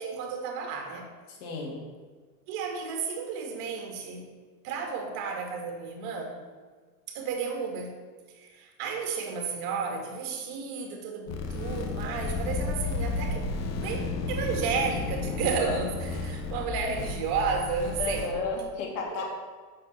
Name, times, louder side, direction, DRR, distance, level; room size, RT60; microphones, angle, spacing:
voice 1, 0.0-1.1 2.5-4.3 4.6-6.4 7.1-7.9 8.3-13.5 13.8-18.3 19.1-19.2, right 5 dB, 50° right, 3 dB, 2.1 m, -32 dB
voice 2, 1.3-1.8 18.0-19.2, left 4 dB, 60° left, -1 dB, 2.9 m, -32 dB
sound 1, 11.3-18.3, left 3 dB, 35° left, 1.2 m, -32 dB
6.3 x 6.2 x 7.0 m, 1.5 s
hypercardioid pair, 100°, 45 cm